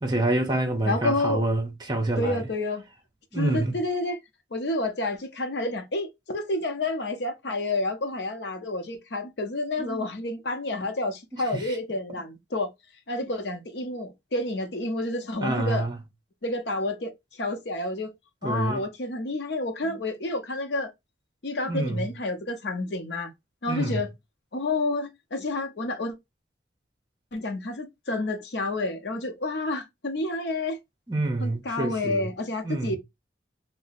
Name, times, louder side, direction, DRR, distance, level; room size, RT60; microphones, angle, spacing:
voice 1, 0.0-2.5 3.3-3.8 9.8-10.0 11.5-11.6 15.4-16.0 18.4-18.8 19.8-20.0 21.6-22.1 23.7-24.0 31.1-32.3 32.6-33.0, right 2 dB, 20° right, 0.7 m, -27 dB
voice 2, 0.9-1.4 2.2-2.8 3.3-4.2 4.5-12.7 13.1-15.9 16.4-18.1 18.4-20.9 21.4-23.3 23.6-24.1 24.5-26.1 27.3-30.8 31.4-33.0, left 2 dB, 70° left, 0.7 m, -29 dB
2.7 x 2.0 x 4.0 m
head